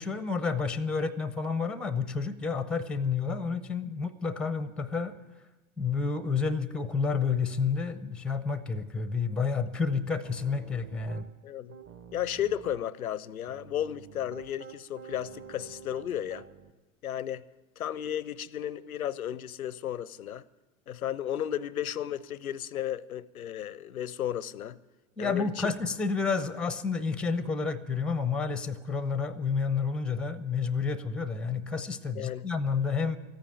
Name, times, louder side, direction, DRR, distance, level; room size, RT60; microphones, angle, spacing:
voice 1, 0.0-5.2 5.8-11.3 25.2-33.2, left 5 dB, ahead, 0.5 m, -30 dB
Piano, 10.2-11.3 11.7-12.8 13.5-16.7, right 7 dB, 30° right, 0.9 m, -48 dB
voice 2, 11.4-11.8 12.1-16.4 17.0-17.4 17.8-20.4 20.9-24.8 25.2-25.7 32.2-32.5, left 11 dB, 90° left, 0.6 m, -34 dB
14.0 x 9.2 x 9.0 m
hypercardioid pair, 95°, 42 cm